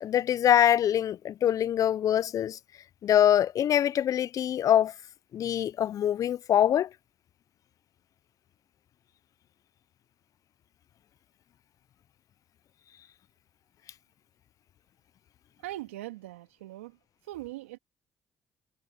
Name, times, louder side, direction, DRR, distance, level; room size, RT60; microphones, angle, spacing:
voice 1, 0.0-2.6 3.0-4.9 5.3-6.9, left 10 dB, 60° left, 0.6 m, -24 dB
voice 2, 15.6-17.0 17.3-17.8, right 16 dB, 85° right, 2.5 m, -40 dB
hypercardioid pair, 45°, 7 cm